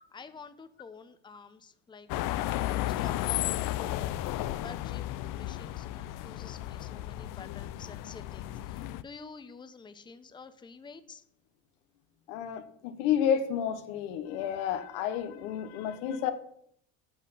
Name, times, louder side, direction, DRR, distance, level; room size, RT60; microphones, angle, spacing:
voice 1, 0.1-2.1 2.8-3.5 3.7-11.2, left 5 dB, 10° left, 0.7 m, -49 dB
sound 1, 2.1-9.0, left 14 dB, 60° left, 0.6 m, -34 dB
voice 2, 12.3-16.3, left 9 dB, 80° left, 1.1 m, -30 dB
8.4 x 5.8 x 5.6 m
supercardioid pair, 105°, 37 cm